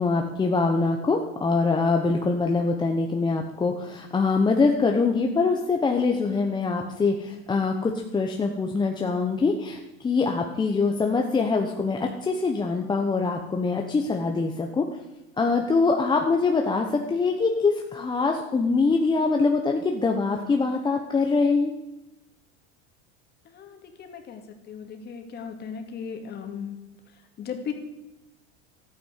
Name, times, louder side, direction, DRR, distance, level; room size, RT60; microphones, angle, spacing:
voice 1, 0.0-14.8 15.4-21.7, left 4 dB, 15° left, 2 dB, 1.0 m, -24 dB
voice 2, 23.4-26.8 27.4-27.7, left 7 dB, 35° left, 5 dB, 2.4 m, -37 dB
13.0 x 9.5 x 8.2 m, 0.98 s
supercardioid pair, 140°, 30 cm